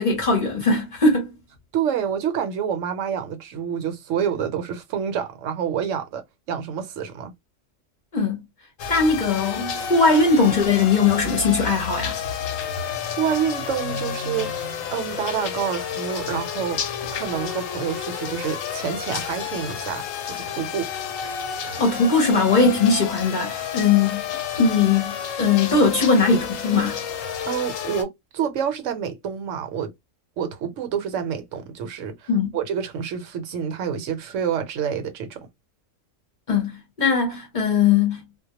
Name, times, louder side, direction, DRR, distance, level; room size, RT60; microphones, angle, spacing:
voice 1, 0.0-1.3 8.1-8.4 8.9-12.2 21.8-24.2 24.6-27.0 32.3-32.5 36.5-38.2, left 4 dB, 45° left, 0.7 m, -20 dB
voice 2, 1.7-6.2 6.5-7.3 13.1-16.8 17.1-20.9 27.4-29.9 30.4-35.4, right 8 dB, 75° right, 0.9 m, -28 dB
sound 1, 8.8-28.0, left 7 dB, 85° left, 1.0 m, -30 dB
2.2 x 2.1 x 2.7 m
omnidirectional pair, 1.3 m